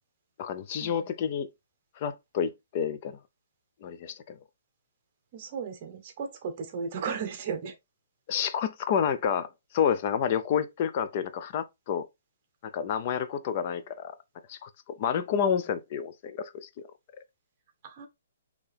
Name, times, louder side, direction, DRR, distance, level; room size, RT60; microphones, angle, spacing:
voice 1, 0.4-1.5 2.0-3.2 3.8-4.4 8.3-12.0 12.6-14.2 14.5-16.9, left 8 dB, 30° left, 0.5 m, -29 dB
voice 2, 5.3-7.7 15.3-15.6 17.8-18.1, right 6 dB, 30° right, 1.0 m, -35 dB
4.4 x 2.9 x 3.3 m
hypercardioid pair, 170°, 0 cm